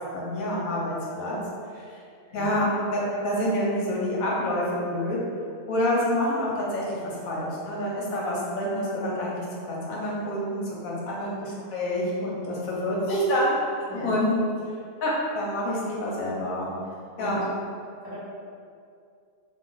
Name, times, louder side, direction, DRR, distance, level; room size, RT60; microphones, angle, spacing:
voice 1, 0.1-1.3 1.8-1.9 2.3-5.2 5.7-13.6 13.9-14.4 15.0-16.7 17.2-17.4, left 1 dB, 75° left, -5 dB, 1.1 m, -27 dB
voice 2, 16.8-17.4 18.0-18.2, left 1 dB, 35° right, -12 dB, 1.1 m, -40 dB
2.5 x 2.2 x 3.7 m, 2.4 s
omnidirectional pair, 1.5 m